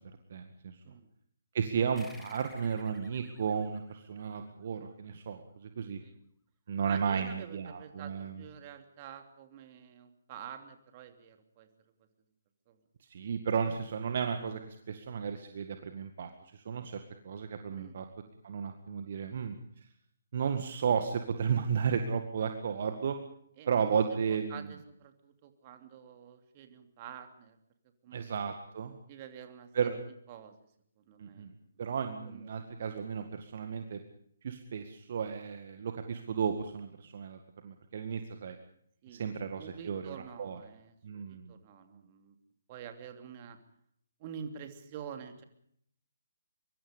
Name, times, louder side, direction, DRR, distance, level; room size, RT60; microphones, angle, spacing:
voice 1, 0.3-0.8 1.5-6.0 6.7-8.4 13.1-17.0 17.2-18.1 18.4-19.6 20.3-23.2 23.7-24.7 28.1-29.0 29.7-30.0 31.2-31.5 31.8-34.0 34.4-38.6 39.1-40.6 41.0-41.5, right 6 dB, 45° right, 7 dB, 1.9 m, -33 dB
sound 1, 2.0-4.9, left 2 dB, 5° left, 2.6 m, -57 dB
voice 2, 6.9-11.7 12.7-12.8 17.7-18.0 23.6-27.6 28.0-28.3 29.1-29.7 30.3-30.5 31.0-31.5 32.3-32.7 39.0-42.4 42.7-43.6 44.2-45.4, right 8 dB, 30° right, 6 dB, 3.0 m, -48 dB
24.0 x 24.0 x 5.3 m, 0.68 s
figure-of-eight pair, 135°, 0 cm